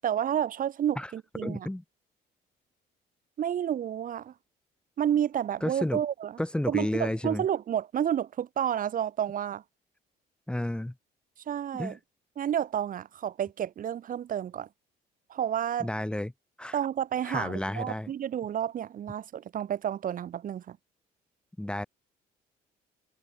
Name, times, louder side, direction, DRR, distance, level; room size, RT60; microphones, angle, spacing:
voice 1, 0.0-1.7 3.4-4.3 5.0-6.3 6.7-9.6 11.5-12.0 12.4-14.7 15.3-15.9 16.7-20.8, right 10 dB, 55° right, 6.9 m, -30 dB
voice 2, 1.4-1.8 5.6-6.0 6.4-7.4 10.5-10.9 11.7-12.0 15.8-16.3 16.6-16.8 17.2-18.1 21.6-21.9, left 1 dB, 5° left, 3.5 m, -31 dB
cardioid pair, 110°, 17 cm